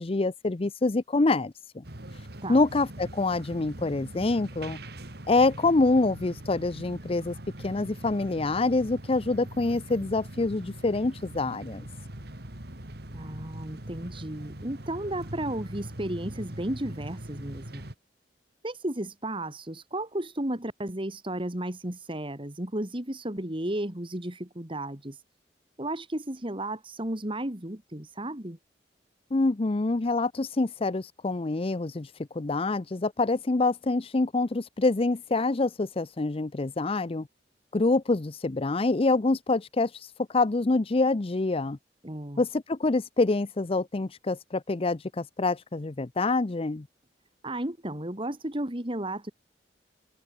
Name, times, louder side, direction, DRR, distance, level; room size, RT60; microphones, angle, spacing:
voice 1, 0.0-1.8 2.5-4.8 5.3-11.9 29.3-37.3 37.7-41.8 42.4-46.9, left 3 dB, 35° left, 0.6 m, -26 dB
sound 1, 1.8-17.9, right 1 dB, 65° right, 3.2 m, -42 dB
voice 2, 13.1-17.8 18.6-25.2 25.8-28.6 42.0-42.4 47.4-49.3, right 1 dB, 30° right, 2.8 m, -34 dB
head